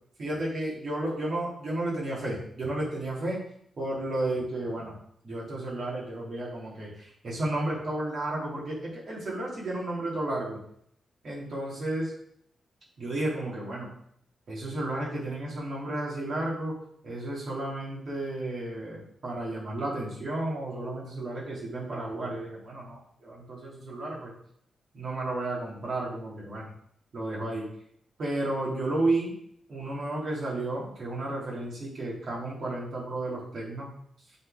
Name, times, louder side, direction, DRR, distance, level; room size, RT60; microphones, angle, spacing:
voice 1, 0.2-3.4 3.8-5.0 5.2-10.6 11.2-12.1 13.0-13.9 14.5-16.7 17.0-24.3 24.9-26.7 27.1-27.7 28.2-29.3 29.7-33.9, right 2 dB, 45° right, -5 dB, 3.3 m, -32 dB
7.6 x 4.4 x 5.2 m, 0.67 s
wide cardioid pair, 165°, 0 cm